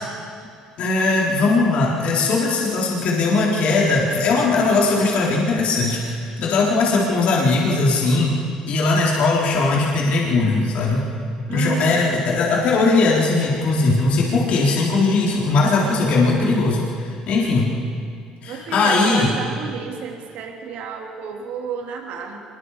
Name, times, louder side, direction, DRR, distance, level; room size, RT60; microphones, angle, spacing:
voice 1, 0.8-8.3 8.7-11.0 11.5-17.7 18.4-19.3, left 3 dB, 65° left, -3 dB, 3.9 m, -19 dB
voice 2, 11.5-12.3 18.5-22.4, right 6 dB, 70° right, 1 dB, 3.3 m, -32 dB
26.0 x 22.5 x 5.0 m, 2.2 s
supercardioid pair, 75°, 2 cm